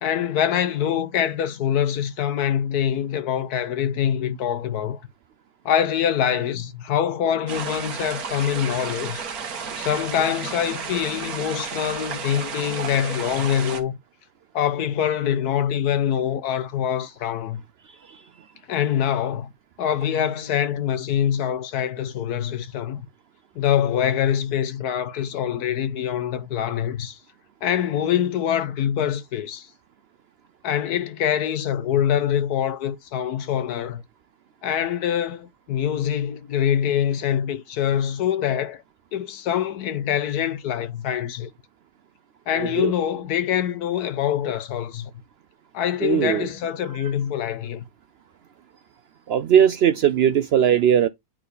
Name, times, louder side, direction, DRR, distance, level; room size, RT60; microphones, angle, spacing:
voice 1, 0.0-5.0 5.6-9.2 9.8-14.0 14.5-17.6 18.7-19.5 19.8-23.1 23.5-27.2 27.6-29.7 30.6-34.0 34.6-38.8 39.1-41.5 42.5-45.1 45.7-47.8, left 9 dB, 75° left, 1.3 m, -24 dB
sound 1, 7.5-13.8, right 6 dB, 70° right, 1.6 m, -32 dB
voice 2, 42.6-42.9 46.0-46.5 49.3-51.1, right 9 dB, 90° right, 0.5 m, -19 dB
8.9 x 3.7 x 4.0 m
omnidirectional pair, 1.7 m